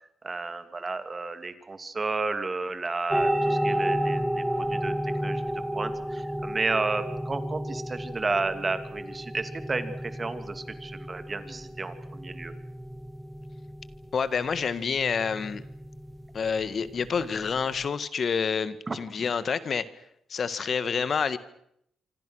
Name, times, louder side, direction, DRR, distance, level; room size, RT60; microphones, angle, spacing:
voice 1, 0.2-5.4 5.7-12.5 18.9-19.0, right 3 dB, 30° right, 10 dB, 2.6 m, -32 dB
sound 1, 3.1-17.9, equal, 5° right, 1.8 m, -32 dB
voice 2, 14.1-15.6 16.3-19.9 20.3-21.4, left 6 dB, 50° left, 14 dB, 1.7 m, -28 dB
26.0 x 26.0 x 6.5 m, 0.74 s
cardioid pair, 95°, 0 cm